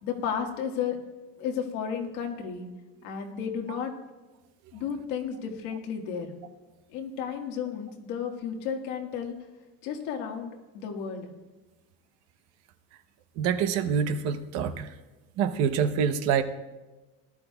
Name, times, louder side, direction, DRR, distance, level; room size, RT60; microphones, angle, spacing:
voice 1, 0.0-1.0 1.4-2.7 3.0-3.9 4.7-6.3 6.9-9.3 9.8-11.3, left 7 dB, 75° left, 2 dB, 1.7 m, -33 dB
voice 2, 13.4-14.9 15.4-16.4, right 7 dB, 55° right, 9 dB, 0.8 m, -26 dB
18.5 x 12.0 x 2.3 m, 1.1 s
cardioid pair, 180°, 31 cm